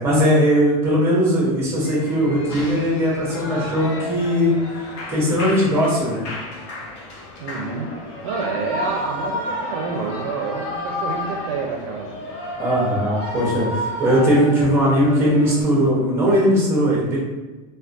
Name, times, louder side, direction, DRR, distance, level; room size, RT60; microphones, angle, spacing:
voice 1, 0.0-4.5 5.1-6.2 12.6-17.2, equal, 15° right, -5 dB, 0.8 m, -19 dB
Shout / Cheering, 1.8-15.6, left 1 dB, 50° left, 0.6 m, -31 dB
voice 2, 7.4-12.2, right 5 dB, 70° right, 1 dB, 0.4 m, -28 dB
2.3 x 2.2 x 2.5 m, 1.2 s
supercardioid pair, 165°, 19 cm